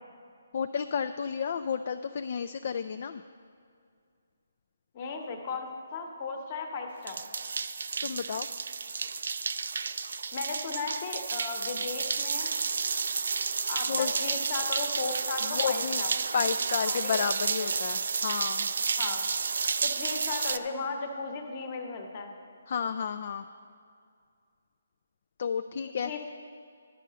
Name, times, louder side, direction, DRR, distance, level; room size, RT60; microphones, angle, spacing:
voice 1, 0.5-3.2 8.0-8.5 13.9-14.2 15.4-16.0 16.3-18.7 22.7-23.4 25.4-26.1, left 6 dB, 50° left, 8 dB, 0.3 m, -31 dB
voice 2, 4.9-7.2 10.3-12.5 13.7-16.1 16.8-17.2 17.6-17.7 19.0-19.2 19.8-22.3 26.0-26.3, left 4 dB, 35° left, 4 dB, 1.1 m, -36 dB
sound 1, 7.1-20.6, right 5 dB, 65° right, 0.4 m, -31 dB
11.0 x 5.5 x 7.4 m, 2.3 s
hypercardioid pair, 160°, 0 cm